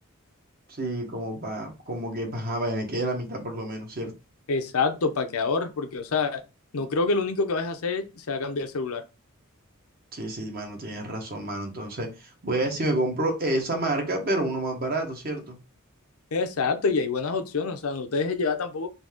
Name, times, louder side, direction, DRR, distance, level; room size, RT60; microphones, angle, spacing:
voice 1, 0.7-4.1 10.1-15.6, right 1 dB, 45° right, 1.1 m, -29 dB
voice 2, 4.5-6.4 6.7-9.0 16.3-18.9, left 4 dB, 75° left, 0.6 m, -27 dB
4.0 x 2.8 x 3.6 m
head